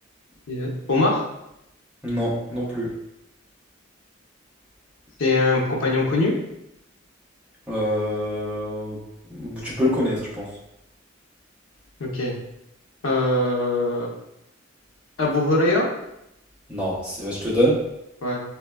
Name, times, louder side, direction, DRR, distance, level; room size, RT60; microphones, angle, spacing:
voice 1, 0.5-1.2 5.2-6.3 12.0-12.4 13.0-14.1 15.2-15.9 18.2-18.4, left 2 dB, 75° left, -2 dB, 0.7 m, -22 dB
voice 2, 2.0-2.9 7.7-9.0 9.3-10.5 16.7-17.8, equal, 5° right, -7 dB, 0.8 m, -25 dB
4.1 x 2.2 x 2.2 m, 0.84 s
head